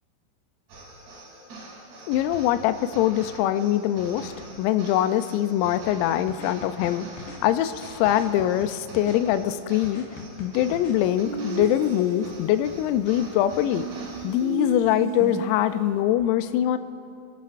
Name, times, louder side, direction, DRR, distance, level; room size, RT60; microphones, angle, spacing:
sound 1, 0.7-14.8, right 2 dB, 55° right, 5.0 m, -44 dB
voice 1, 2.1-4.3 4.6-10.1 10.4-13.9 14.2-16.8, left 12 dB, 90° left, 11 dB, 3.3 m, -23 dB
sound 2, 6.3-7.4 8.1-9.2 9.8-11.0 11.6-11.7, left 4 dB, 65° left, 2.3 m, -43 dB
sound 3, 11.3-12.5 13.8-16.0, right 8 dB, 90° right, 2.7 m, -34 dB
28.0 x 14.5 x 2.5 m, 2.6 s
omnidirectional pair, 6.0 m